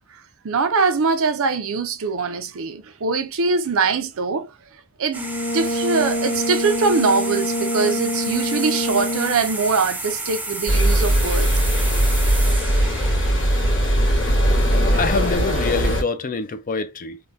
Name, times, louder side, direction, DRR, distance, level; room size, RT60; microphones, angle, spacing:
voice 1, 0.4-4.5 5.0-5.3 5.5-11.5, right 4 dB, 65° right, 0.6 m, -22 dB
Brass instrument, 5.1-9.5, left 1 dB, 80° left, 1.0 m, -26 dB
sound 1, 5.1-14.3, right 2 dB, 10° right, 0.6 m, -32 dB
sound 2, 10.7-16.0, equal, 60° left, 1.7 m, -19 dB
voice 2, 13.7-17.2, left 3 dB, 40° left, 0.5 m, -27 dB
3.5 x 2.2 x 2.6 m
head